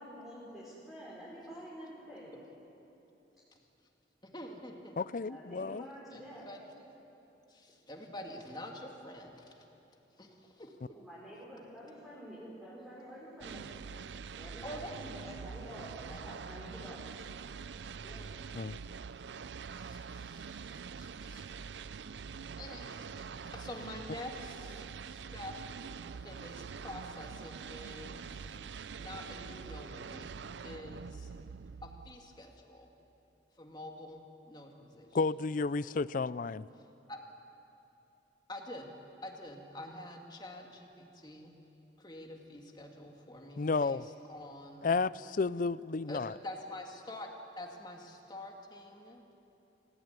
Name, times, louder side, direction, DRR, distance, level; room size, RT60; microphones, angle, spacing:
voice 1, 0.0-2.4 5.2-6.5 10.9-13.7 14.4-17.2, equal, ahead, -9 dB, 5.4 m, -48 dB
voice 2, 4.3-4.9 6.1-6.2 6.5-6.6 7.5-9.6 10.2-10.8 14.6-15.3 18.0-18.3 19.7-21.5 22.6-25.5 26.2-28.6 29.0-31.3 31.8-32.9 33.6-35.2 37.1-37.2 38.5-38.9 39.2-41.5 42.0-44.0 44.3-44.9 46.1-47.3 47.6-49.4, left 1 dB, 25° left, 2 dB, 2.5 m, -47 dB
voice 3, 5.0-5.9 18.5-18.8 35.1-36.7 43.6-44.0 44.8-46.3, left 4 dB, 50° left, 18 dB, 0.4 m, -32 dB
sound 1, 13.4-32.4, right 5 dB, 80° right, 0.5 m, -45 dB
26.0 x 17.0 x 9.6 m, 3.0 s
head